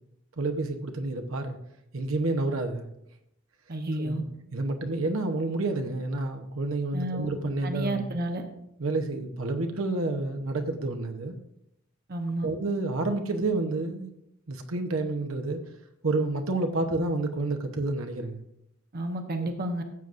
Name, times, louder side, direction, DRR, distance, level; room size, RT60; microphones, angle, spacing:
voice 1, 0.4-1.6 1.9-2.9 4.0-4.2 4.5-8.1 8.8-11.3 12.4-14.1 14.5-15.6 16.0-18.4 19.4-19.5, right 2 dB, 75° right, 5 dB, 1.0 m, -29 dB
voice 2, 3.7-4.2 6.9-7.3 7.6-8.4 12.1-12.5 18.9-19.8, right 1 dB, 50° right, 5 dB, 0.9 m, -31 dB
15.0 x 7.7 x 2.6 m, 0.80 s
head